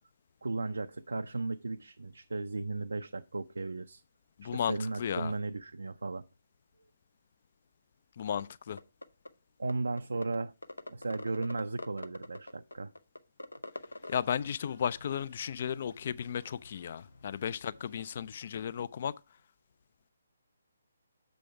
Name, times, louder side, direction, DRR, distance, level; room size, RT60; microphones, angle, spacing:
voice 1, 0.4-4.0 4.4-6.2 9.6-10.5 10.9-12.9, right 3 dB, 70° right, 0.4 m, -35 dB
voice 2, 4.4-5.3 8.2-8.8 14.1-19.1, left 8 dB, 45° left, 0.3 m, -34 dB
sound 1, 8.4-8.5 8.8-9.3 9.7-9.8 10.0-10.4 10.6-14.2, left 2 dB, 80° left, 0.6 m, -41 dB
sound 2, 14.0-18.4, left 3 dB, 60° left, 1.4 m, -60 dB
6.8 x 5.1 x 4.5 m
figure-of-eight pair, 140°, 0 cm